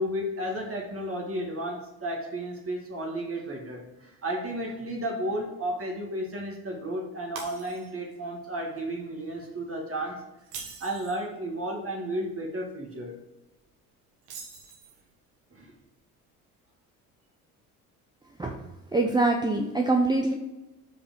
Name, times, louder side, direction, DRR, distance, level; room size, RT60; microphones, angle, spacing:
voice 1, 0.0-10.2 10.8-13.1 15.5-15.7, right 1 dB, 30° right, 0 dB, 1.8 m, -33 dB
Shatter, 7.4-8.1 8.6-8.8 10.4-11.2 14.2-15.1, right 4 dB, 70° right, 1.5 m, -42 dB
voice 2, 18.4-20.3, right 2 dB, 10° right, 1 dB, 0.7 m, -25 dB
5.1 x 5.0 x 6.0 m, 0.98 s
hypercardioid pair, 55°, 43 cm